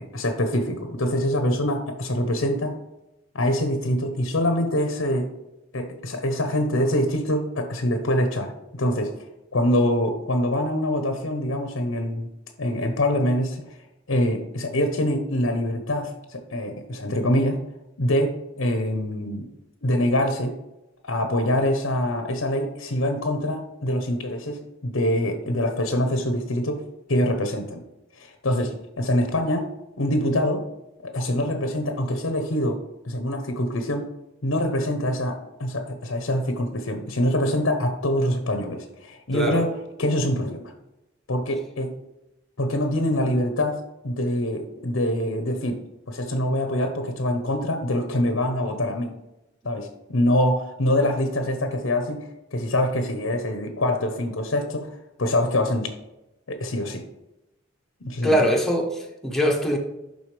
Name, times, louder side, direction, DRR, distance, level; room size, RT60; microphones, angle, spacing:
voice 1, 0.0-2.8 3.3-5.3 5.7-9.1 9.5-12.3 12.6-13.6 14.1-17.6 18.0-19.5 19.8-20.6 21.0-26.8 27.1-27.8 28.2-29.7 30.0-30.7 31.0-34.1 34.4-40.7 41.3-41.9 42.6-45.8 46.1-49.1 49.6-55.9 56.5-57.0 58.0-58.4, left 1 dB, 80° left, 6 dB, 0.9 m, -25 dB
voice 2, 39.3-39.6 58.2-59.8, equal, ahead, 0 dB, 1.1 m, -22 dB
11.0 x 4.0 x 3.3 m, 0.94 s
head